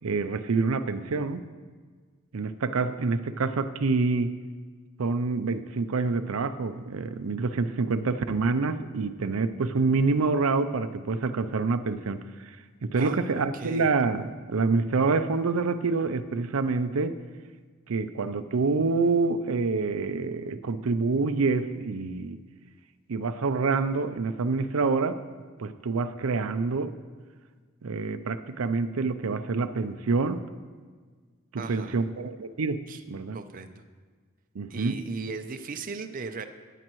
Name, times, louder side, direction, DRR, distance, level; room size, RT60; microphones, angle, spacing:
voice 1, 0.0-1.4 2.3-4.4 5.0-12.6 12.8-17.1 17.9-22.4 23.1-25.2 25.6-26.9 27.8-30.4 31.5-33.4 34.5-35.0, right 4 dB, 85° right, 9 dB, 0.5 m, -27 dB
voice 2, 12.9-13.9 31.6-32.0 32.9-33.0 33.3-33.8 34.7-36.5, right 4 dB, 40° right, 7 dB, 0.6 m, -37 dB
16.5 x 9.9 x 3.1 m, 1.5 s
head